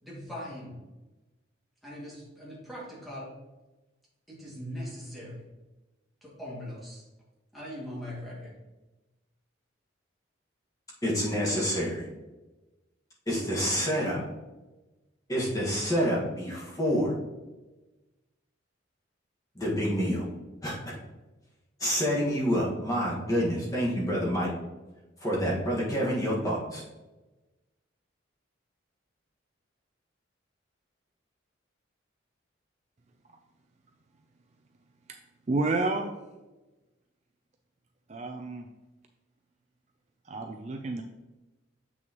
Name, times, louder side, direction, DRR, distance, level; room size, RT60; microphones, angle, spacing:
voice 1, 0.0-0.8 1.8-3.3 4.3-5.4 6.2-7.0 7.5-8.5, equal, ahead, -7 dB, 2.2 m, -40 dB
voice 2, 11.0-12.1 13.3-14.2 15.3-17.1 19.5-20.2 20.6-20.9 21.8-24.5 25.2-26.8, equal, 20° left, -5 dB, 1.6 m, -28 dB
voice 3, 35.5-36.1 38.1-38.7 40.3-41.0, right 3 dB, 35° right, 5 dB, 0.4 m, -30 dB
7.5 x 6.1 x 3.0 m, 1.1 s
head